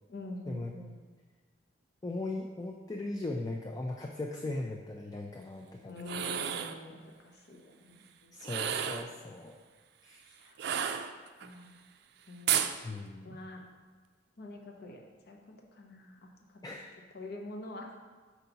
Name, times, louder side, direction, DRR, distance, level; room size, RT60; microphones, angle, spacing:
voice 1, 0.1-1.0 5.8-8.5 10.3-10.6 11.4-11.8 12.3-12.6 13.2-13.6 14.4-16.6 17.1-17.9, left 2 dB, 60° left, 2 dB, 0.8 m, -46 dB
voice 2, 2.0-6.2 8.3-9.6 10.0-10.2 12.8-13.4 16.6-16.9, left 2 dB, 20° left, 1 dB, 0.4 m, -38 dB
sound 1, 6.0-6.8 8.4-9.1 10.6-11.5 12.5-12.8, right 9 dB, 65° right, 0.4 m, -32 dB
5.7 x 4.6 x 3.9 m, 1.4 s
head